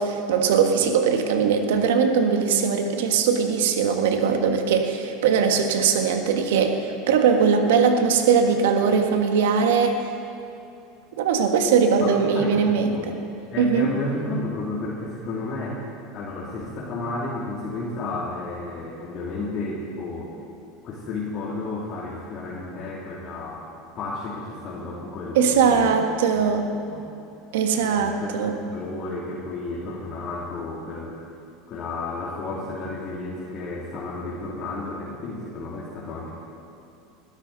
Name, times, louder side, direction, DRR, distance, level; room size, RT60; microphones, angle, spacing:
voice 1, 0.0-6.8 7.1-10.1 11.2-13.0 13.6-13.9 25.3-26.7 27.5-28.5, right 6 dB, 85° right, 5 dB, 1.6 m, -20 dB
voice 2, 12.0-13.1 13.5-15.8 16.1-20.3 20.8-23.7 23.9-26.0 26.3-26.5 26.9-27.0 27.7-31.2 31.7-36.3, left 2 dB, 45° left, -6 dB, 2.9 m, -32 dB
20.5 x 12.5 x 4.1 m, 2.7 s
supercardioid pair, 120°, 0 cm